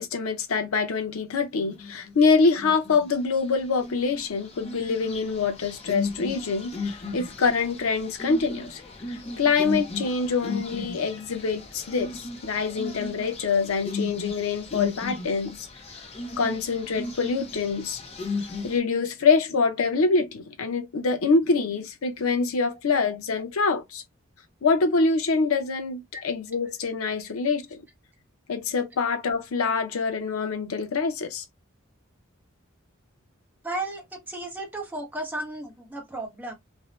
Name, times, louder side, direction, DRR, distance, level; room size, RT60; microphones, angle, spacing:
voice 1, 0.0-8.8 9.1-15.7 16.4-18.0 18.6-24.0 24.6-27.8 28.5-31.4, left 4 dB, 85° left, 0.6 m, -25 dB
sound 1, 1.7-2.1 2.5-3.1 3.6-18.8, left 3 dB, 30° left, 0.5 m, -36 dB
voice 2, 33.6-36.5, right 2 dB, 10° right, 0.7 m, -34 dB
2.6 x 2.0 x 3.0 m
head